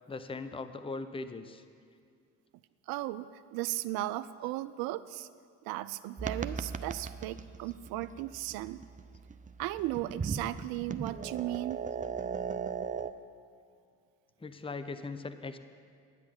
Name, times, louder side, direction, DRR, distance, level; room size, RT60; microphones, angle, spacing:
voice 1, 0.1-1.6 14.4-15.6, left 3 dB, 15° left, 10 dB, 0.8 m, -39 dB
voice 2, 2.9-5.3 5.6-8.8 9.6-11.8, right 16 dB, 65° right, 14 dB, 0.5 m, -36 dB
sound 1, 6.2-13.1, right 6 dB, 20° right, 0.6 m, -38 dB
10.5 x 9.7 x 7.5 m, 2.1 s
hypercardioid pair, 50°, 38 cm